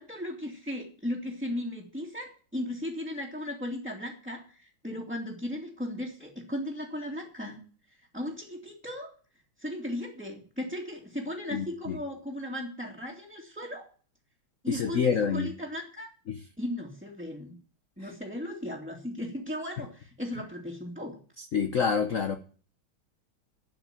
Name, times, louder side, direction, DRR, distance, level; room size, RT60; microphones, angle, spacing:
voice 1, 0.0-7.6 7.9-9.1 9.6-13.9 14.6-16.1 16.6-17.5 18.0-21.2, left 1 dB, 5° right, -4 dB, 2.3 m, -36 dB
voice 2, 11.5-12.0 14.7-15.5 16.3-16.4 18.0-18.1 21.4-22.4, left 6 dB, 50° left, 7 dB, 1.0 m, -27 dB
12.5 x 5.8 x 9.2 m, 0.41 s
omnidirectional pair, 2.2 m